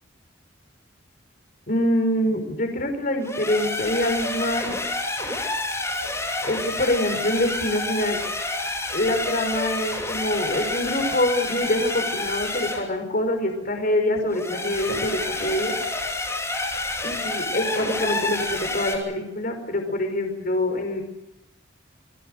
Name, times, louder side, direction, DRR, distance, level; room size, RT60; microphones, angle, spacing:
voice 1, 1.7-4.8 6.4-8.2 8.9-15.8 17.0-21.0, left 1 dB, 45° left, 5 dB, 5.3 m, -25 dB
sound 1, 3.2-12.9 14.3-19.0, left 2 dB, 15° left, 6.5 m, -29 dB
28.5 x 22.0 x 6.7 m, 0.88 s
head